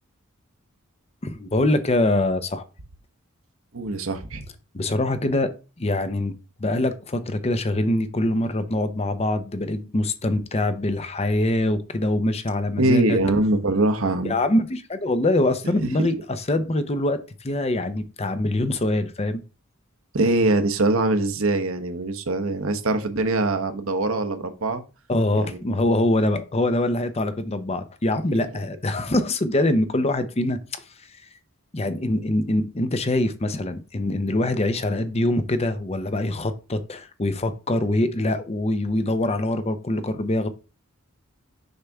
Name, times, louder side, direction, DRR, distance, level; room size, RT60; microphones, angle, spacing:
voice 1, 1.2-2.6 4.7-5.5 5.8-6.3 6.6-13.2 14.2-19.4 25.1-30.8 31.7-40.5, left 1 dB, 30° left, 0.7 m, -24 dB
voice 2, 3.7-4.4 12.8-14.4 16.0-16.1 20.1-24.8 25.3-25.6 28.3-28.5, right 2 dB, 70° right, 1.0 m, -23 dB
6.6 x 5.7 x 3.5 m
head